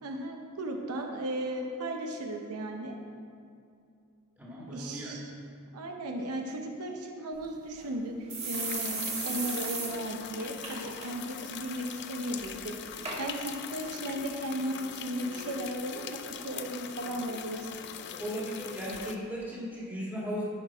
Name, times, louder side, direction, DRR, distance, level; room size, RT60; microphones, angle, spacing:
voice 1, 0.0-3.0 4.7-5.2 5.7-16.2 16.4-17.7, right 1 dB, 85° right, 3 dB, 0.8 m, -36 dB
voice 2, 4.4-5.1 18.2-20.4, equal, 10° right, -6 dB, 1.8 m, -36 dB
sound 1, 7.4-7.5 7.8-7.9 8.3-9.9 10.2-10.3 10.6-11.1 11.4-11.7 12.4-12.5 13.0-13.2 13.9-14.0, right 4 dB, 30° right, 1.6 m, -35 dB
sound 2, 8.5-19.2, left 8 dB, 50° left, 0.4 m, -42 dB
10.0 x 4.9 x 4.9 m, 2.5 s
head